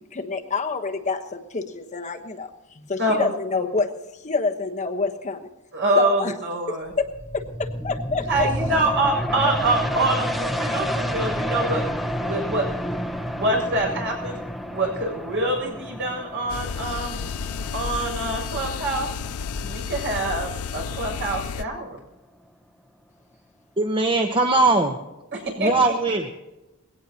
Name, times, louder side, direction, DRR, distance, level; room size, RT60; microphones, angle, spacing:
voice 1, 0.0-2.5 2.7-5.5 6.0-6.3 6.7-7.1 7.3-8.5, left 4 dB, 35° left, 4 dB, 1.1 m, -27 dB
voice 2, 3.0-3.3 5.7-6.9 8.3-11.8 12.2-14.4 14.7-17.2 17.7-19.1 19.6-22.0 25.3-25.9, right 2 dB, 55° right, 0 dB, 7.0 m, -25 dB
sound 1, 6.9-20.2 20.6-20.7, equal, ahead, 0.9 m, -30 dB
sound 2, 8.2-9.1, left 1 dB, 60° left, 6.7 m, -37 dB
sound 3, 16.5-21.6, left 6 dB, 80° left, 0.5 m, -31 dB
voice 3, 23.8-25.0 25.6-26.3, right 2 dB, 25° right, 4 dB, 1.0 m, -20 dB
21.0 x 17.5 x 2.9 m, 1.0 s
head